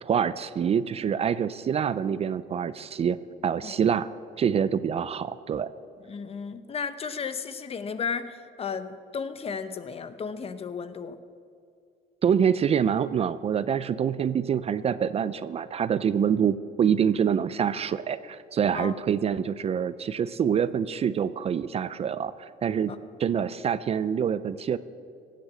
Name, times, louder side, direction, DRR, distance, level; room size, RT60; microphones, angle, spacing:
voice 1, 0.0-3.2 3.4-4.1 4.4-5.7 12.2-22.9 23.2-24.8, right 8 dB, 35° right, 15 dB, 0.4 m, -26 dB
voice 2, 6.1-11.2 18.7-19.0 22.9-23.0, left 6 dB, 35° left, 11 dB, 0.9 m, -34 dB
17.0 x 7.7 x 7.6 m, 2.4 s
cardioid pair, 110°, 17 cm